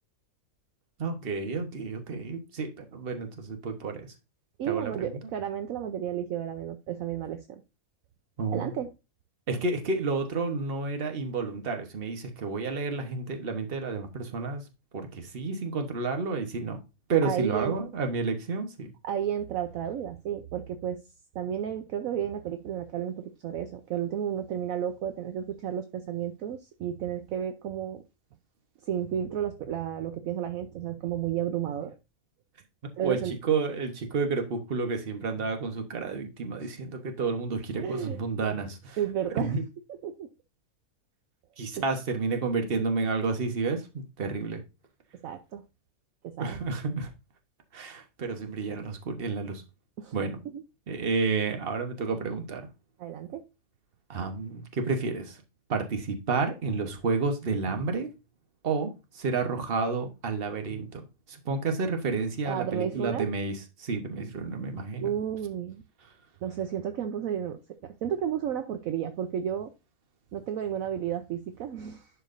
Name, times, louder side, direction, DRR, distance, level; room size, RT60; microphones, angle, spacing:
voice 1, 1.0-4.1 4.6-5.2 8.4-8.7 9.5-14.6 14.9-16.8 17.1-18.9 33.0-39.0 39.3-39.6 41.6-44.6 46.4-47.1 47.7-49.6 50.1-50.4 50.9-52.6 54.1-55.4 55.7-58.1 58.6-65.1, right 4 dB, 40° right, 1.2 m, -30 dB
voice 2, 4.6-7.6 8.5-8.9 17.2-17.7 19.0-21.0 21.3-28.0 28.8-32.0 33.0-33.4 36.6-36.7 37.8-38.2 38.5-38.6 39.0-39.6 40.0-40.3 45.2-45.6 46.2-46.6 50.0-50.1 50.5-50.6 53.0-53.4 62.4-63.3 65.0-65.8 66.4-69.7 70.3-72.1, right 9 dB, 70° right, 1.0 m, -32 dB
11.0 x 4.8 x 2.6 m
omnidirectional pair, 1.6 m